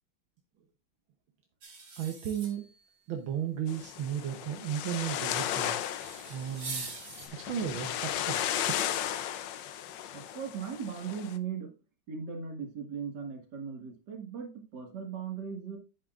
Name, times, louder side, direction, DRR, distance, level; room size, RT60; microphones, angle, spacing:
sound 1, 1.6-2.9 5.8-7.3, right 3 dB, 90° right, 3.7 m, -43 dB
voice 1, 2.0-2.6 3.1-5.8 6.3-6.9 7.3-8.8, right 9 dB, 70° right, 3 dB, 1.7 m, -34 dB
sound 2, 3.7-11.4, left 11 dB, 70° left, 1.2 m, -35 dB
voice 2, 10.1-11.7 12.1-15.8, right 7 dB, 55° right, 2 dB, 2.3 m, -38 dB
10.5 x 8.6 x 2.5 m, 0.30 s
omnidirectional pair, 2.3 m